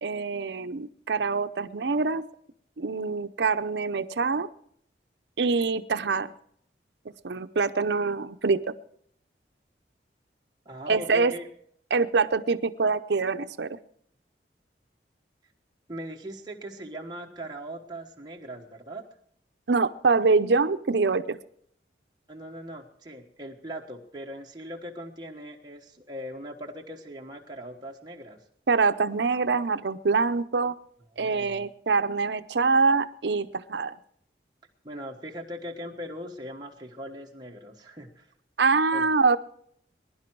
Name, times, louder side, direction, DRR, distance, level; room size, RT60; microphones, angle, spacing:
voice 1, 0.0-2.2 2.8-4.5 5.4-6.3 7.2-8.7 10.9-11.4 11.9-13.8 19.7-21.4 28.7-30.8 31.2-34.0 38.6-39.4, right 4 dB, 75° right, 11 dB, 0.6 m, -25 dB
voice 2, 10.6-11.5 15.9-19.0 22.3-28.4 31.1-31.7 34.8-38.3 38.9-39.1, equal, 25° right, 0 dB, 1.3 m, -40 dB
21.0 x 11.0 x 4.6 m, 0.67 s
head